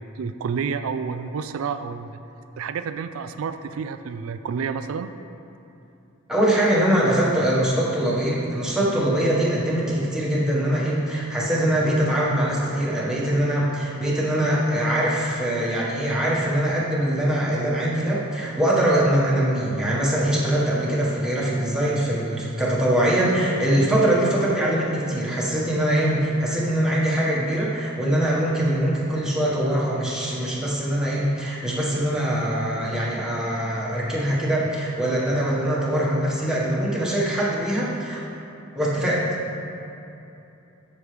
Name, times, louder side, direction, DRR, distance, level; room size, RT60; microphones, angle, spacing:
voice 1, 0.0-2.2 2.6-5.1, right 6 dB, 85° right, 10 dB, 0.4 m, -29 dB
voice 2, 6.3-38.2 38.7-39.2, right 1 dB, 5° right, -7 dB, 1.6 m, -22 dB
13.5 x 6.3 x 3.4 m, 2.8 s
head